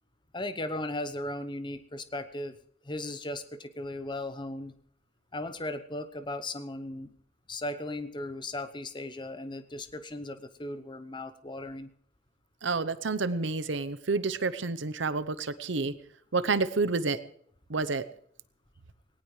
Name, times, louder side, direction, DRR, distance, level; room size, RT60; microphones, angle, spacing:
voice 1, 0.3-2.6 2.8-4.7 5.3-7.1 7.5-11.9, left 1 dB, 25° left, 11 dB, 0.9 m, -37 dB
voice 2, 12.6-15.9 16.3-17.2 17.7-18.0, right 3 dB, 65° right, 14 dB, 0.8 m, -29 dB
19.5 x 18.0 x 3.2 m, 0.64 s
head